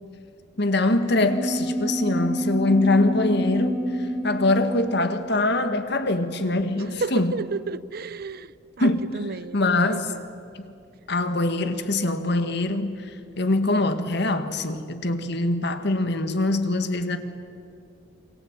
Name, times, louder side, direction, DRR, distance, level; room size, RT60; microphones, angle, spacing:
voice 1, 0.6-7.3 8.8-9.1 9.5-10.0 11.1-13.1 13.4-17.2, left 2 dB, 60° left, 1.9 m, -23 dB
sound 1, 1.0-7.0, equal, 5° right, 3.0 m, -29 dB
voice 2, 6.9-8.5 8.8-10.2, right 3 dB, 55° right, 0.6 m, -32 dB
28.0 x 23.0 x 8.9 m
head